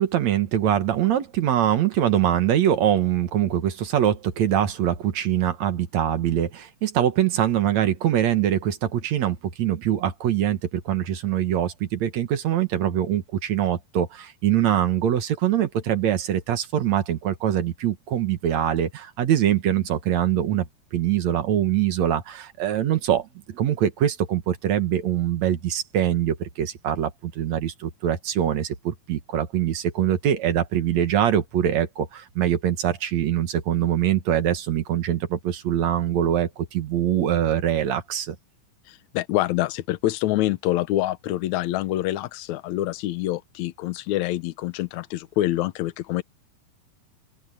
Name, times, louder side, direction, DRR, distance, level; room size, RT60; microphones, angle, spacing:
voice 1, 0.0-20.7 20.9-38.4, right 10 dB, 60° right, 2.2 m, -23 dB
voice 2, 38.9-46.2, left 15 dB, 70° left, 1.8 m, -26 dB
open air
omnidirectional pair, 4.3 m